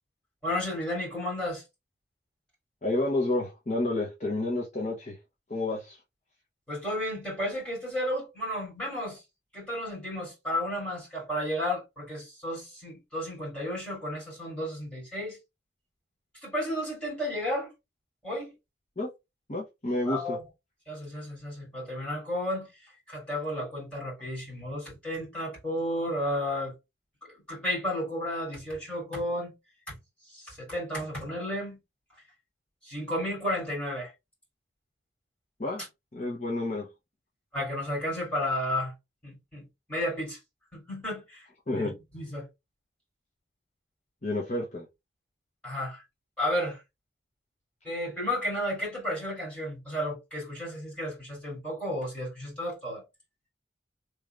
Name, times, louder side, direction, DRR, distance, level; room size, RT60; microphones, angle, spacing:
voice 1, 0.4-1.6 6.7-9.2 9.5-15.4 16.4-17.7 18.2-18.5 20.0-20.4 20.9-26.7 27.5-29.5 29.9-30.0 30.3-31.8 32.8-34.1 37.5-38.9 39.2-40.4 40.7-41.5 41.7-42.5 45.6-46.0 46.4-46.8 47.8-53.0, left 1 dB, 5° left, 2.9 m, -33 dB
voice 2, 2.8-5.2 5.5-6.0 19.0-19.1 19.5-20.4 35.6-35.8 36.1-36.9 41.7-42.0 44.2-44.9, left 2 dB, 40° left, 1.0 m, -30 dB
3.7 x 3.1 x 3.2 m
head